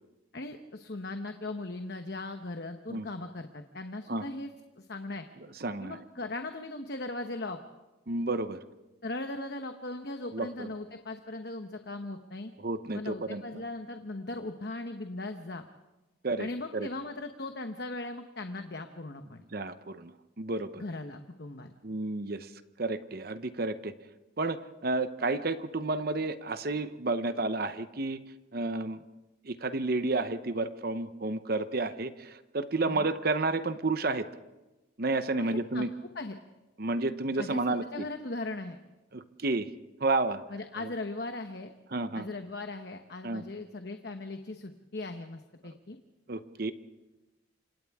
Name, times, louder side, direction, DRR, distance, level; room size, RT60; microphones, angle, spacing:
voice 1, 0.3-4.5 4.8-5.3 5.8-7.6 9.0-12.5 12.9-15.6 16.4-19.4 20.8-21.7 32.8-33.1 35.4-35.9 36.1-36.4 37.4-38.8 40.5-41.7 42.1-46.0, left 2 dB, 55° left, 6 dB, 1.0 m, -38 dB
voice 2, 5.6-6.0 8.1-8.6 10.3-10.7 12.6-13.6 16.2-16.9 19.5-20.8 21.8-22.5 22.8-23.9 24.4-28.2 28.5-29.0 29.4-34.3 35.0-35.9 36.8-38.1 39.1-39.7 40.0-40.4 40.8-40.9 41.9-42.3 43.2-43.4 46.3-46.7, right 3 dB, 50° right, 11 dB, 0.9 m, -31 dB
29.0 x 25.5 x 3.6 m, 1.1 s
head